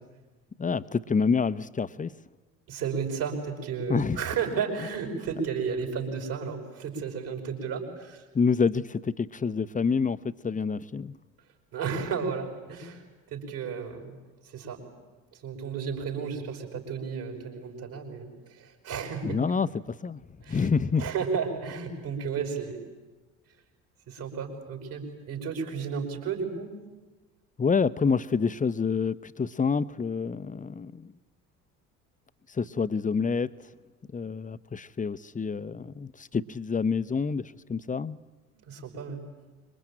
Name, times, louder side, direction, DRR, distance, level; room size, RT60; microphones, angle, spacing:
voice 1, 0.6-2.1 3.9-4.2 8.3-11.2 19.2-20.2 20.5-21.1 27.6-31.1 32.5-33.5 34.1-38.2, left 5 dB, 20° left, 14 dB, 1.0 m, -27 dB
voice 2, 2.7-8.2 11.7-13.0 13.3-14.2 14.4-14.8 15.3-19.4 20.4-20.7 21.0-22.8 24.1-26.7 38.7-39.2, right 6 dB, 55° right, 3 dB, 5.9 m, -33 dB
26.0 x 23.5 x 9.0 m, 1.2 s
figure-of-eight pair, 55°, 39 cm